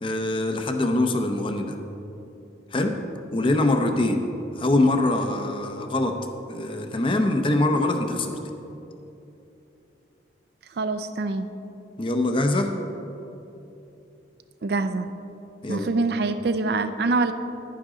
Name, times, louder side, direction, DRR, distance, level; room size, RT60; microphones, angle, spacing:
voice 1, 0.0-1.7 2.7-3.0 3.3-4.2 4.6-6.1 6.5-8.4 12.0-12.7 15.6-15.9, left 2 dB, 30° left, 5 dB, 0.6 m, -23 dB
voice 2, 10.7-11.5 14.6-15.1 15.7-17.3, right 3 dB, 55° right, 10 dB, 0.4 m, -25 dB
10.5 x 9.9 x 3.8 m, 2.9 s
head